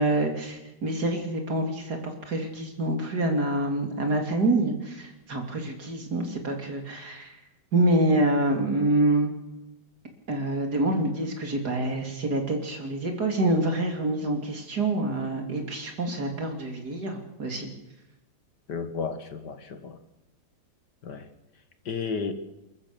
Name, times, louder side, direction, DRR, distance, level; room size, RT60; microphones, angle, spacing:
voice 1, 0.0-7.4 7.7-9.3 10.3-17.7, right 1 dB, 60° right, 4 dB, 3.8 m, -26 dB
voice 2, 18.7-20.0 21.0-21.3 21.9-22.3, left 5 dB, 70° left, 9 dB, 2.3 m, -32 dB
29.0 x 14.0 x 7.1 m, 0.93 s
omnidirectional pair, 1.9 m